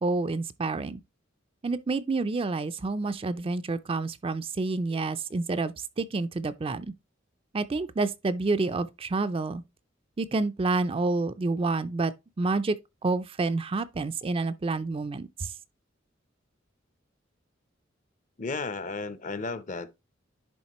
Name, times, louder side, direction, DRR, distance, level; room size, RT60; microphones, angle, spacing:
voice 1, 0.0-1.0 1.6-6.9 7.5-9.6 10.2-12.8 13.0-15.5, right 3 dB, 30° right, 0.4 m, -28 dB
voice 2, 18.4-20.0, left 4 dB, 40° left, 0.6 m, -34 dB
10.5 x 3.7 x 3.0 m
head